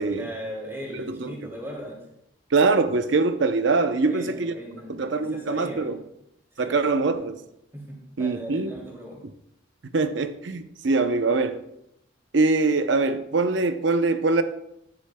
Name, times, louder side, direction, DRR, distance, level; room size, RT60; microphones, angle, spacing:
voice 1, 0.1-2.0 4.0-5.9 6.5-7.2 7.7-9.2, equal, 15° right, 2.5 m, -38 dB
voice 2, 0.9-1.3 2.5-4.5 4.9-6.0 6.6-7.4 8.2-8.7 9.9-11.6 12.3-14.4, right 3 dB, 70° right, 0.6 m, -23 dB
11.5 x 9.7 x 2.2 m
head